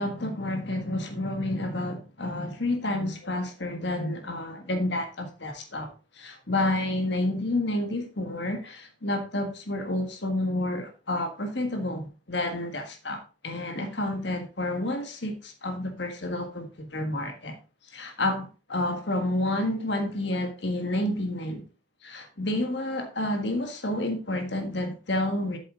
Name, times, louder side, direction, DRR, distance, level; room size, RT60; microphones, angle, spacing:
voice 1, 0.0-17.6 17.9-21.6 22.0-25.6, left 1 dB, 60° left, 1.6 m, -30 dB
8.3 x 7.6 x 3.7 m
head